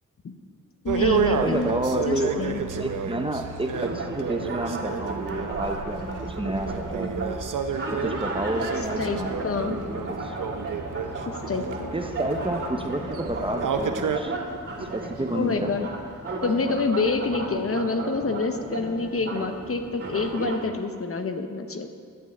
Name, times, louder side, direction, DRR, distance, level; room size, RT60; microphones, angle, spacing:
voice 1, 0.8-1.7 2.1-2.6 8.6-9.8 11.5-11.9 15.3-15.9 16.4-21.9, left 4 dB, 45° left, 7 dB, 0.8 m, -27 dB
sound 1, 0.9-14.2, right 6 dB, 70° right, 0.8 m, -31 dB
voice 2, 1.4-2.3 2.7-7.3 7.9-9.6 10.1-10.4 11.9-14.4 14.8-15.9, right 1 dB, 15° right, 5 dB, 0.7 m, -30 dB
sound 2, 3.7-20.6, right 2 dB, 45° right, 2.6 m, -34 dB
11.0 x 5.4 x 8.3 m, 2.1 s
cardioid pair, 85°, 33 cm